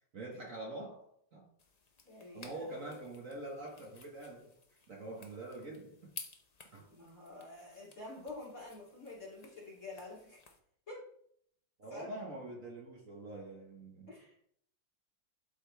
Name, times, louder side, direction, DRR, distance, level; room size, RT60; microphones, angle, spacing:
voice 1, 0.1-1.4 2.3-4.5 4.9-6.1 6.7-6.8 11.8-14.1, right 2 dB, 45° right, -2 dB, 1.5 m, -45 dB
sound 1, 1.6-10.6, left 4 dB, 75° left, 0.3 m, -55 dB
voice 2, 2.0-2.9 6.9-10.4 10.9-11.0 11.9-12.1 14.1-14.3, left 2 dB, 40° left, -6 dB, 3.1 m, -48 dB
12.0 x 4.1 x 3.4 m, 0.68 s
omnidirectional pair, 2.1 m